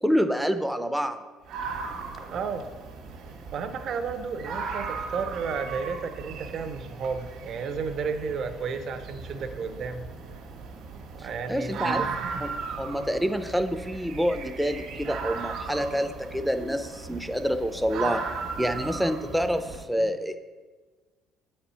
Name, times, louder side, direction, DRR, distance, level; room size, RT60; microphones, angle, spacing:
voice 1, 0.0-1.2 11.2-12.0 12.4-18.2 18.6-20.4, equal, ahead, 7 dB, 0.5 m, -27 dB
sound 1, 1.5-19.8, right 5 dB, 70° right, 1.4 m, -37 dB
voice 2, 2.3-2.7 3.5-10.1 11.1-12.4, right 5 dB, 55° right, 9 dB, 0.7 m, -33 dB
7.8 x 4.4 x 5.5 m, 1.3 s
cardioid pair, 120°, 0 cm